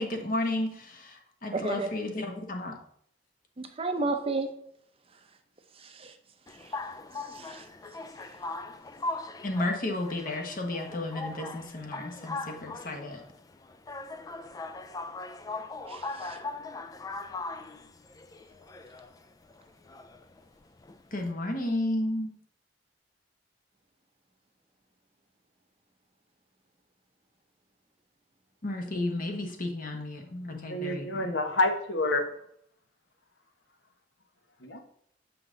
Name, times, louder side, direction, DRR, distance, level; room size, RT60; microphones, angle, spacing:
voice 1, 0.0-2.8 9.4-13.2 21.1-22.3 28.6-31.3, left 1 dB, 45° left, 3 dB, 1.2 m, -33 dB
voice 2, 1.5-1.9 3.6-4.5 5.8-6.2 6.5-6.8 7.2-7.7 15.9-16.4, right 3 dB, 30° right, 7 dB, 0.6 m, -33 dB
sound 1, 6.5-21.3, left 3 dB, 20° left, 0.3 m, -40 dB
voice 3, 30.7-32.3 34.6-34.8, left 2 dB, 65° left, 5 dB, 1.0 m, -28 dB
6.6 x 5.7 x 3.8 m, 0.69 s
head